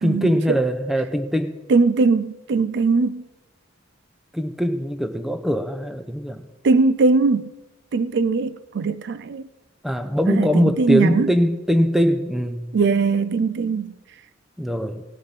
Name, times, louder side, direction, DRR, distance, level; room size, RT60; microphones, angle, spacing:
voice 1, 0.0-1.5 4.3-6.4 9.8-12.7 14.6-15.0, equal, ahead, 0.8 m, -22 dB
voice 2, 1.7-3.3 6.6-7.5 7.9-9.5 10.3-11.3 12.7-13.9, right 4 dB, 60° right, 0.4 m, -20 dB
18.0 x 6.5 x 5.7 m
head